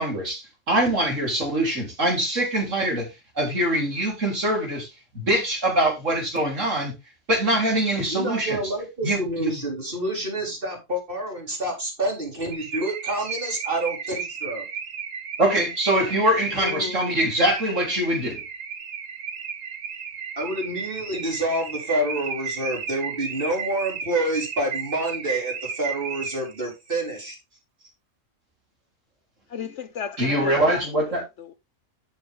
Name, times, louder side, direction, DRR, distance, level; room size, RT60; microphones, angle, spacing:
voice 1, 0.0-3.1 3.3-6.9 7.3-8.6 9.0-9.6 15.4-18.4 30.2-31.2, right 1 dB, 60° right, 4.2 m, -23 dB
voice 2, 8.1-14.7 20.4-27.4, right 1 dB, 40° right, 4.6 m, -28 dB
Car / Alarm, 12.5-26.7, right 6 dB, 85° right, 1.7 m, -34 dB
voice 3, 16.6-17.2 29.5-31.5, left 6 dB, 60° left, 1.0 m, -35 dB
11.5 x 7.1 x 3.7 m
omnidirectional pair, 1.5 m